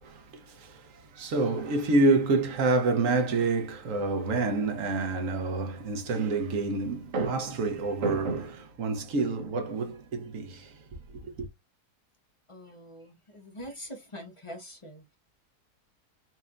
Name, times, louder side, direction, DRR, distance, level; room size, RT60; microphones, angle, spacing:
voice 1, 0.0-10.8 11.2-11.5, right 3 dB, 60° right, 1.2 m, -28 dB
voice 2, 12.5-15.2, equal, 25° left, 0.7 m, -44 dB
4.2 x 2.6 x 2.4 m
omnidirectional pair, 1.7 m